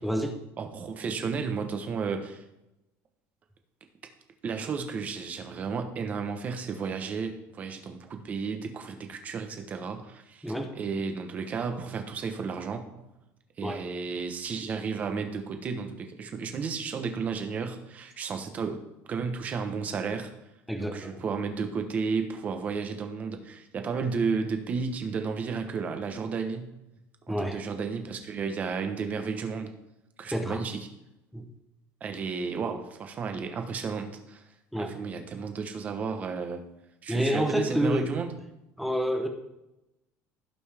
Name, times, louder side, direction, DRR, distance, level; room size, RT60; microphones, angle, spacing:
voice 1, 0.0-0.3 10.4-10.7 13.6-13.8 20.7-21.2 27.3-27.6 30.3-30.6 31.3-31.5 34.7-34.9 37.1-38.2 38.8-39.3, equal, ahead, 5 dB, 0.8 m, -28 dB
voice 2, 0.6-2.4 4.4-13.1 13.6-18.8 19.1-20.3 20.8-26.7 27.3-29.7 30.2-30.9 32.0-34.4 34.8-36.6 37.0-38.3, right 5 dB, 25° right, 6 dB, 1.0 m, -33 dB
16.0 x 5.4 x 3.5 m, 0.91 s
cardioid pair, 180°, 6 cm